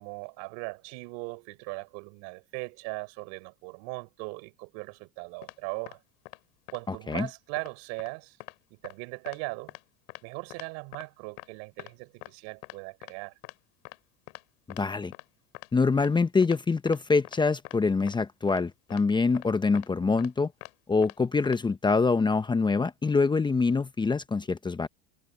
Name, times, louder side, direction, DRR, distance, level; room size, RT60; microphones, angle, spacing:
voice 1, 0.0-6.0 6.7-8.4 8.7-9.7 10.2-13.3 20.0-20.2, right 31 dB, 70° right, 4.4 m, -39 dB
Footsteps Shoes Tile Fast, 5.4-5.5 5.9-6.0 6.3-6.4 6.7-6.8 7.1-7.3 7.6-7.7 8.0-8.1 8.4-8.5 8.8-8.9 9.3-9.4 9.7-9.8 10.1-10.2 10.5-10.7 10.9-11.0 11.4-11.5 11.8-11.9 12.2-12.3 12.6-12.8 13.0-13.1 13.4-13.5 13.8-14.0 14.3-14.4 14.7-14.8 15.1-15.2 15.5-15.7 16.0-16.1 16.4-16.6 16.9-17.0 17.2-17.4 17.6-17.8 18.1-18.2 18.5-18.6 18.9-19.0 19.3-19.5 19.7-19.9 20.2-20.3 20.6-20.7 21.0-21.2 21.4-21.6, left 29 dB, 75° left, 6.2 m, -44 dB
voice 2, 6.9-7.3 14.7-15.1 15.7-20.5 20.9-24.9, left 4 dB, 15° left, 1.0 m, -25 dB
supercardioid pair, 110°, 32 cm